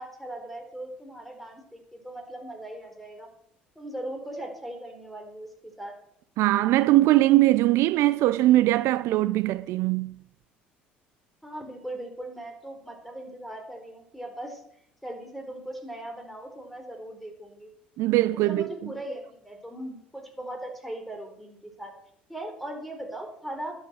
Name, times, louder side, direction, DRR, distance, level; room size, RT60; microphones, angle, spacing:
voice 1, 0.0-3.3 3.8-5.9 11.4-14.6 15.0-17.7 18.3-21.9 22.3-23.7, right 1 dB, ahead, 4.2 m, -39 dB
voice 2, 6.4-10.1 18.0-18.6, right 16 dB, 65° right, 0.4 m, -21 dB
11.0 x 7.4 x 7.8 m
hypercardioid pair, 60°, 5 cm